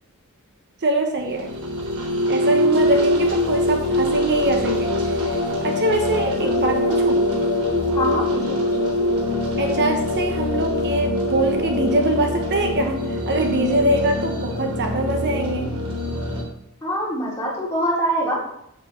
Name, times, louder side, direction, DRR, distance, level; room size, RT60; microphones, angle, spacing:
voice 1, 0.8-1.5 2.3-5.4 5.6-7.2 9.6-15.7, right 1 dB, 50° right, 4 dB, 1.1 m, -23 dB
sound 1, 1.2-16.4, left 1 dB, 80° right, 3.5 m, -23 dB
voice 2, 7.9-8.7 16.8-18.4, equal, 10° left, -6 dB, 4.0 m, -24 dB
8.4 x 7.5 x 6.2 m, 0.76 s
head